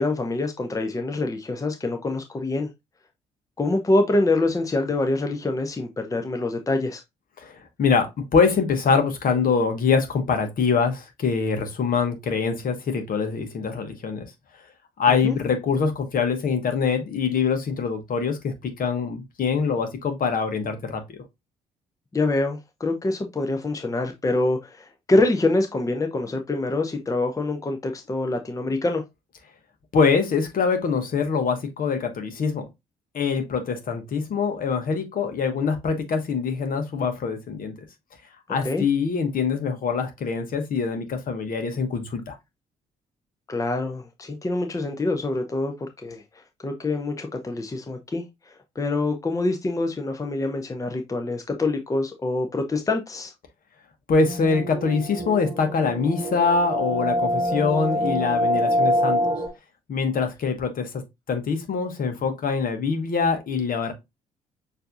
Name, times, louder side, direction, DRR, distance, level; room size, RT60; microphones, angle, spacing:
voice 1, 0.0-2.7 3.6-7.0 15.1-15.4 22.1-29.0 38.6-38.8 43.5-45.7 46.0-46.2 46.6-48.2 48.8-53.3, left 2 dB, 15° left, 0.7 m, -25 dB
voice 2, 7.4-14.3 15.0-21.0 29.9-32.6 33.1-37.7 38.5-42.4 54.1-59.2 59.9-61.0 61.3-63.9, left 5 dB, 50° left, 1.1 m, -24 dB
sound 1, 54.2-59.5, equal, 15° right, 1.4 m, -25 dB
6.6 x 2.7 x 2.5 m
figure-of-eight pair, 45°, 19 cm